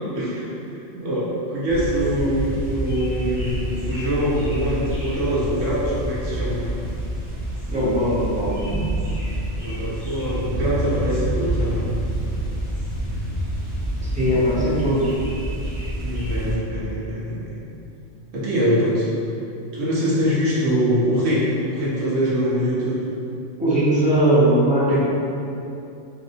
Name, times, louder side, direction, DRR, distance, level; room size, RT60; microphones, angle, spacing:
voice 1, 0.1-6.8 9.5-11.9 16.0-17.6 18.3-19.1 19.7-23.0 24.9-25.0, equal, 80° right, -7 dB, 1.0 m, -24 dB
sound 1, 1.7-16.6, right 1 dB, 65° left, 1.4 m, -28 dB
voice 2, 7.7-8.8 14.0-15.1 23.6-25.0, right 1 dB, 10° right, -10 dB, 0.5 m, -20 dB
4.0 x 2.0 x 2.6 m, 2.7 s
omnidirectional pair, 1.3 m